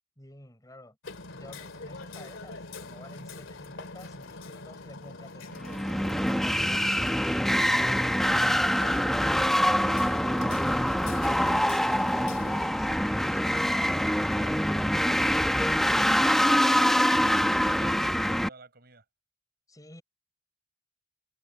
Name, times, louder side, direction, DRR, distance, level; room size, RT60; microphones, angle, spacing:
voice 1, 0.2-1.0 1.3-7.7 19.7-20.0, left 1 dB, 20° left, 7.3 m, -50 dB
Hammer, 1.0-12.7, left 3 dB, 85° left, 2.7 m, -44 dB
sound 1, 5.6-18.5, equal, ahead, 1.0 m, -25 dB
voice 2, 15.2-19.0, right 4 dB, 55° right, 6.1 m, -50 dB
head